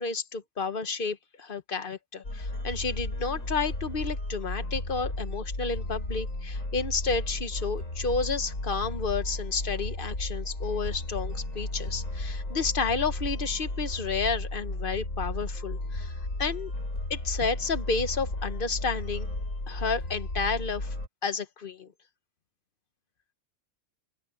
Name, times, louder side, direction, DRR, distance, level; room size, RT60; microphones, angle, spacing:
voice 1, 0.0-16.1 16.4-16.7 17.1-19.3 19.7-20.9 21.2-21.9, left 4 dB, 45° left, 1.2 m, -31 dB
sound 1, 2.2-21.1, left 2 dB, 80° left, 6.3 m, -34 dB
open air
omnidirectional pair, 1.3 m